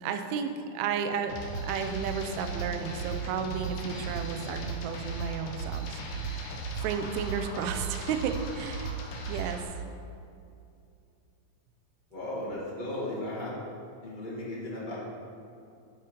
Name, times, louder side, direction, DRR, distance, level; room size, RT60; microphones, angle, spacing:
voice 1, 0.0-1.3 1.6-6.5 6.8-9.0 9.3-9.7, right 6 dB, 85° right, 6 dB, 1.6 m, -33 dB
sound 1, 1.3-9.6, right 4 dB, 75° left, 2.5 m, -36 dB
voice 2, 12.1-13.6 14.0-15.0, left 1 dB, 45° left, -8 dB, 0.5 m, -35 dB
9.9 x 4.4 x 5.1 m, 2.6 s
omnidirectional pair, 3.9 m